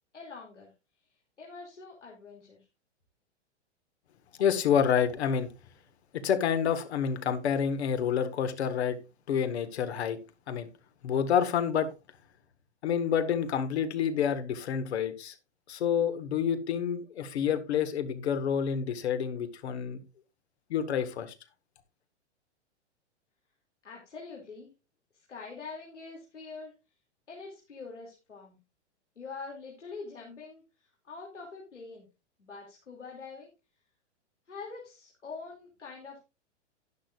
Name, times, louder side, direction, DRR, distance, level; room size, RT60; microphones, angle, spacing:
voice 1, 0.1-0.7 1.4-2.7 23.8-24.7 25.1-26.7 27.3-28.6 29.2-32.1 32.4-33.5 34.5-36.2, left 4 dB, 85° left, 2.8 m, -44 dB
voice 2, 4.4-5.5 6.1-9.0 9.3-10.2 10.5-10.7 11.0-11.9 12.8-15.3 15.7-20.0 20.7-21.3, left 8 dB, 65° left, 1.7 m, -28 dB
11.5 x 10.5 x 2.5 m
hypercardioid pair, 115°, 35 cm